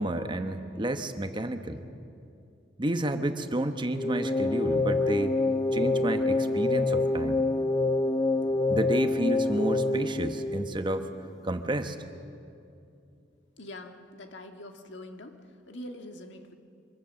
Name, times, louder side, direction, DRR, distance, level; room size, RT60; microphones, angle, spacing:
voice 1, 0.0-1.8 2.8-5.4 5.7-7.5 8.7-11.1 11.4-12.0, right 1 dB, 25° right, 7 dB, 1.0 m, -30 dB
sound 1, 3.9-11.2, left 2 dB, 20° left, 0.5 m, -27 dB
voice 2, 13.6-15.4 15.7-16.5, left 1 dB, 70° left, 5 dB, 1.7 m, -43 dB
25.5 x 22.5 x 7.3 m, 2.5 s
head